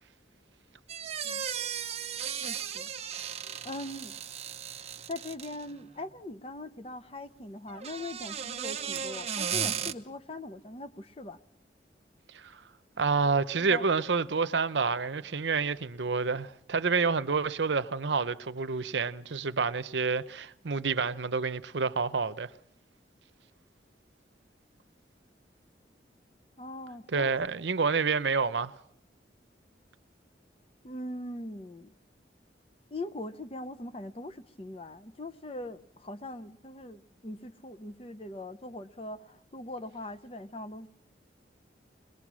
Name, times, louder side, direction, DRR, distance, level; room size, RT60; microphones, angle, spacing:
sound 1, 0.9-5.7 7.7-9.9, right 8 dB, 35° right, 0.9 m, -35 dB
voice 1, 2.4-3.2 3.6-4.2 5.1-11.4 13.6-13.8 26.6-27.3 30.8-31.9 32.9-40.9, left 2 dB, 30° left, 0.8 m, -41 dB
voice 2, 13.0-22.5 27.1-28.7, right 5 dB, 80° right, 0.7 m, -28 dB
22.5 x 20.5 x 6.2 m
head